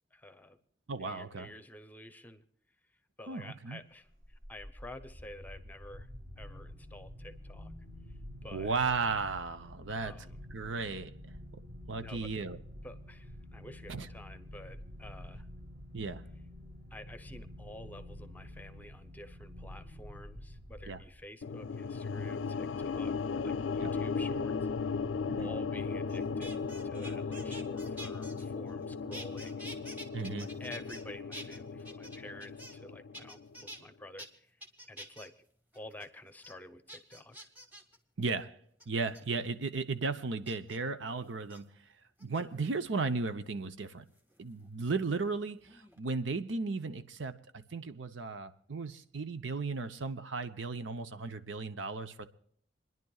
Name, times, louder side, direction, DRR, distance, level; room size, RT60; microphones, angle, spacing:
voice 1, 0.1-0.6 1.0-2.5 3.2-6.1 6.4-7.7 8.4-8.8 10.0-10.4 12.0-12.3 12.8-15.5 16.9-24.9 25.4-29.7 30.6-34.6 34.9-35.4 35.7-37.5, left 1 dB, 10° left, 0.8 m, -50 dB
voice 2, 0.9-1.5 3.3-3.8 8.5-10.3 10.5-11.1 11.9-12.6 13.9-14.1 15.9-16.2 20.9-21.0 23.8-23.9 25.3-25.5 30.1-30.5 38.2-38.6 38.9-41.7 42.2-44.1 44.4-52.3, right 4 dB, 80° right, 0.8 m, -35 dB
sound 1, 4.1-21.5, left 1 dB, 40° right, 2.0 m, -48 dB
sound 2, 21.4-33.7, left 5 dB, 85° left, 0.4 m, -36 dB
sound 3, 26.1-28.8 29.1-31.0 31.3-32.9 33.1-33.8 34.2-34.3 34.6-35.3 35.7-36.1 36.4-36.5 36.9-38.0 38.8-39.2 40.4-40.8 41.4-41.6 42.2-42.8 44.2-45.4 45.6-46.0, right 1 dB, 10° right, 1.4 m, -48 dB
28.5 x 10.5 x 2.4 m
head